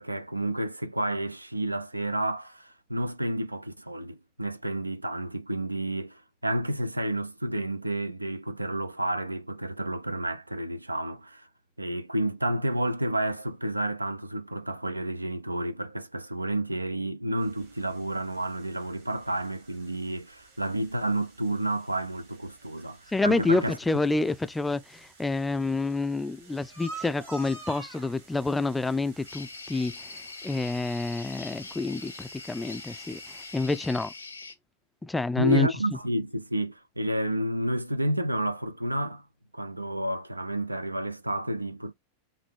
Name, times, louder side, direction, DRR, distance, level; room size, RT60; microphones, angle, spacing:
voice 1, 0.0-11.5 11.8-23.8 35.4-39.3 39.5-41.9, right 1 dB, 85° right, 0.4 m, -30 dB
sound 1, 17.4-34.4, right 4 dB, 60° right, 2.0 m, -50 dB
voice 2, 23.1-34.1 35.0-35.7, left 3 dB, 10° left, 0.4 m, -28 dB
sound 2, 29.2-34.5, left 4 dB, 80° left, 0.7 m, -43 dB
5.2 x 2.6 x 3.4 m
figure-of-eight pair, 90°, 0 cm